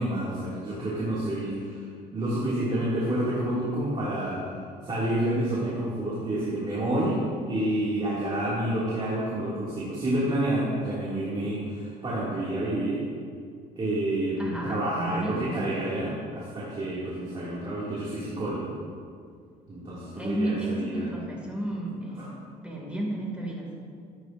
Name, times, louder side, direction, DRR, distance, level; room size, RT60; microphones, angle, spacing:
voice 1, 0.0-4.4 4.8-7.2 7.5-13.0 13.8-18.7 19.7-21.1, right 1 dB, 30° right, -8 dB, 2.4 m, -29 dB
voice 2, 14.4-15.7 20.2-23.8, right 1 dB, 5° right, -3 dB, 2.3 m, -32 dB
13.5 x 8.9 x 2.6 m, 2.2 s
cardioid pair, 110°, 17 cm